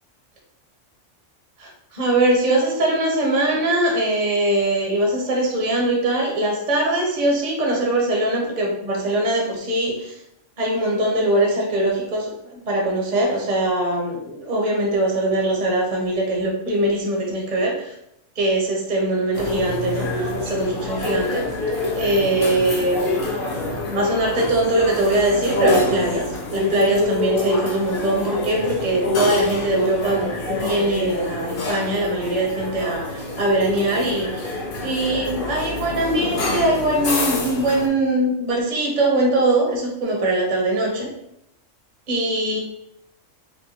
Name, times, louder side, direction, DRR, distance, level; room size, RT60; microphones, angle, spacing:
voice 1, 1.6-10.2 10.6-17.9 18.4-21.5 22.0-23.3 23.7-41.1 42.1-42.6, right 1 dB, 40° right, -1 dB, 0.8 m, -22 dB
sound 1, 19.3-37.9, left 2 dB, 50° left, 0.7 m, -27 dB
5.4 x 2.2 x 2.8 m, 0.80 s
omnidirectional pair, 1.3 m